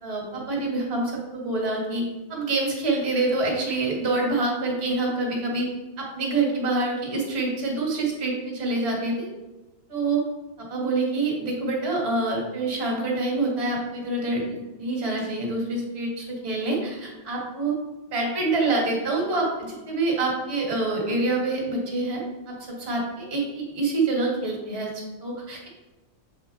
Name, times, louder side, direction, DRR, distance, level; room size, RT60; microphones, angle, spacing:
voice 1, 0.0-2.0 2.3-5.7 6.0-9.3 9.9-10.2 10.6-17.7 18.1-24.9 25.2-25.7, right 2 dB, 30° right, -2 dB, 1.9 m, -26 dB
7.2 x 4.4 x 4.1 m, 1.1 s
omnidirectional pair, 2.3 m